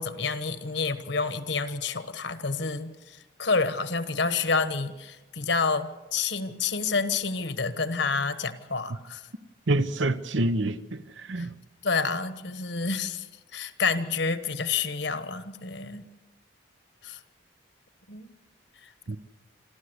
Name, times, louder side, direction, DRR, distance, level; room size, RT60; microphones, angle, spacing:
voice 1, 0.0-9.3 11.4-11.5 11.8-13.3 13.5-16.1 17.0-17.2 18.1-18.3, left 4 dB, 65° left, 1.2 m, -29 dB
voice 2, 9.7-11.5 19.1-19.2, right 2 dB, 75° right, 0.9 m, -27 dB
27.0 x 13.0 x 8.0 m
head